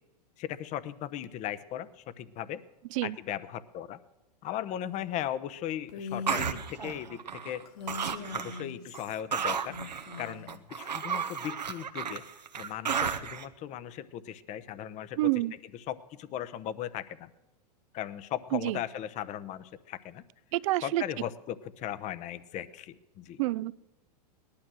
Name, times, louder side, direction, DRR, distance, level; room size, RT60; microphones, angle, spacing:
voice 1, 0.4-2.6 3.0-4.0 4.4-7.6 8.3-12.2 12.6-15.3 15.7-17.3 17.9-20.2 20.8-23.4, left 11 dB, 35° left, 16 dB, 0.9 m, -37 dB
Female speech woman speaking, 5.9-6.6 7.7-9.1 9.7-10.6, left 5 dB, 60° left, 2.5 m, -41 dB
sound 1, 6.3-7.6 7.9-8.6 8.9-13.4, right 7 dB, 90° right, 1.2 m, -33 dB
voice 2, 15.2-15.5 18.5-18.8 20.5-21.0 23.4-23.7, right 18 dB, 50° right, 20 dB, 0.5 m, -28 dB
18.5 x 11.5 x 6.2 m, 1.0 s
hypercardioid pair, 110°, 21 cm